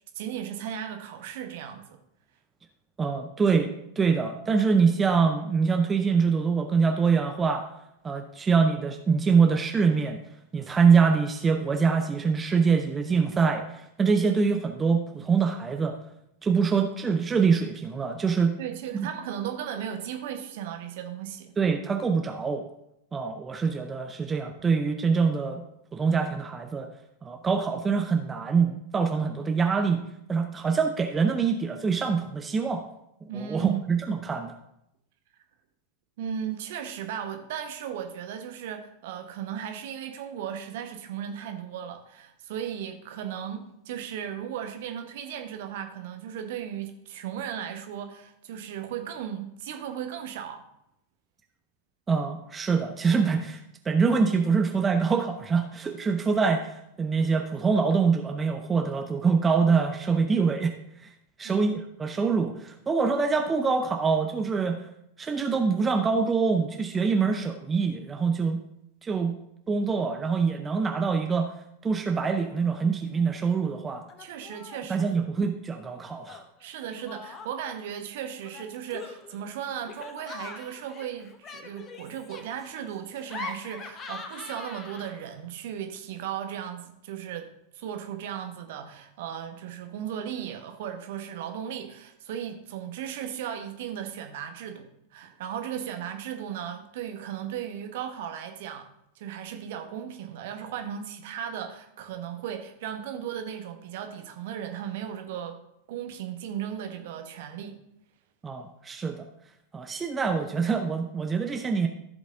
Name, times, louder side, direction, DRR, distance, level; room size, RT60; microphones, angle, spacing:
voice 1, 0.1-2.0 18.6-21.5 33.3-33.8 36.2-50.7 61.4-61.7 74.2-75.1 76.6-98.9 99.2-105.6 105.9-107.8, right 9 dB, 55° right, 6 dB, 1.1 m, -36 dB
voice 2, 3.0-3.7 4.0-7.6 8.0-10.2 10.5-16.0 16.4-18.5 18.9-19.1 21.6-22.6 23.1-25.6 25.9-26.9 27.2-30.0 30.3-32.8 33.3-34.5 52.1-60.7 61.4-64.8 65.2-68.6 69.0-69.3 69.7-71.5 71.8-74.0 74.9-76.4 108.4-109.3 109.7-111.9, right 5 dB, 15° right, 5 dB, 0.7 m, -24 dB
Laughter, 72.4-72.8 73.1-73.7 74.1-74.9 76.2-77.8 78.4-85.4, left 5 dB, 25° left, 0.9 m, -43 dB
14.5 x 5.3 x 3.6 m, 0.80 s
figure-of-eight pair, 90°, 0 cm